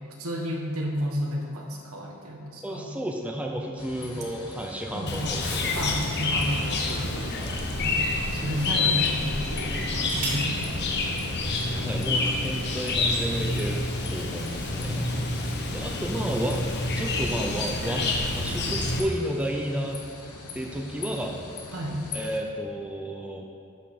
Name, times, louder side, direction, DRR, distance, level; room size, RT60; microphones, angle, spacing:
voice 1, 0.1-2.9 4.0-4.2 4.9-5.4 5.7-7.3 7.8-10.8 14.7-15.2 21.7-22.0, equal, 75° right, 0 dB, 1.3 m, -32 dB
voice 2, 2.6-5.8 7.4-7.6 11.7-13.8 14.1-15.1 15.4-16.6 17.0-20.0 20.5-21.3 22.1-23.4, equal, 5° right, 1 dB, 0.5 m, -32 dB
sound 1, 3.8-22.4, left 2 dB, 85° left, 1.0 m, -43 dB
Chirp tweet, 5.1-19.0, left 2 dB, 50° left, 0.9 m, -28 dB
sound 2, 9.9-10.6 11.7-11.8 12.1-12.5, right 2 dB, 40° right, 2.0 m, -36 dB
11.0 x 5.2 x 4.3 m, 2.4 s
head